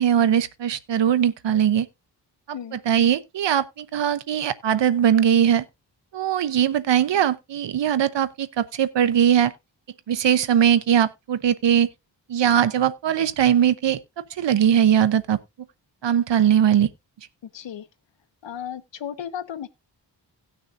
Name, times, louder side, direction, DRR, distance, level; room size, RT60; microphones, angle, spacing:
voice 1, 0.0-1.9 2.7-5.6 6.1-9.5 10.1-11.9 12.3-14.0 14.4-15.4 16.0-16.9, right 9 dB, 75° right, 0.8 m, -20 dB
voice 2, 17.4-17.9 18.4-19.7, left 9 dB, 85° left, 1.1 m, -34 dB
17.5 x 6.2 x 2.5 m
wide cardioid pair, 110°, 43 cm